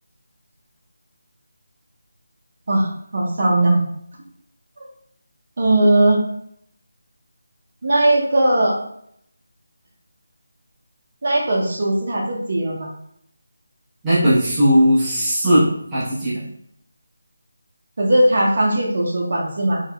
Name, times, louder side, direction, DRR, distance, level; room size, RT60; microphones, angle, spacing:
voice 1, 2.7-3.8 4.8-4.9 5.6-6.2 7.8-8.8 11.2-12.9 18.0-19.8, right 1 dB, 45° right, -2 dB, 0.7 m, -18 dB
voice 2, 14.0-16.4, equal, 10° right, -13 dB, 0.6 m, -17 dB
3.4 x 2.0 x 2.3 m, 0.70 s
figure-of-eight pair, 175°, 0 cm